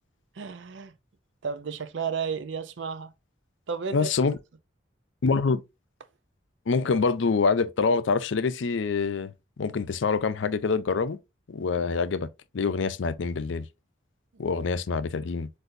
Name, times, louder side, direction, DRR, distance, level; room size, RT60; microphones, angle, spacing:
voice 1, 0.4-0.9 1.4-3.1 3.7-4.3 14.3-14.4, right 6 dB, 70° right, 0.5 m, -33 dB
voice 2, 3.9-4.4 5.2-5.6 6.7-9.3 9.6-11.2 11.5-13.7 14.4-15.5, left 4 dB, 75° left, 0.5 m, -25 dB
7.8 x 2.6 x 2.6 m
head